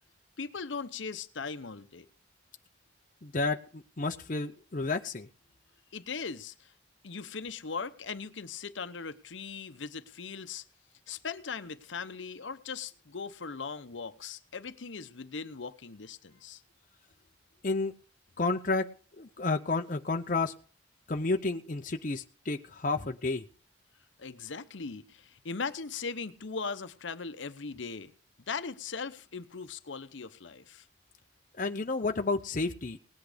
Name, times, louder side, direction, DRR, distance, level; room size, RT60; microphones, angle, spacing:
voice 1, 0.4-2.1 5.9-6.7 7.0-10.6 11.1-16.6 24.2-28.1 28.5-30.9, left 5 dB, 70° left, 0.8 m, -39 dB
voice 2, 3.2-5.3 17.6-17.9 18.4-18.8 19.2-20.5 21.1-23.4 31.6-33.0, left 3 dB, 40° left, 0.7 m, -31 dB
18.5 x 8.3 x 5.0 m
head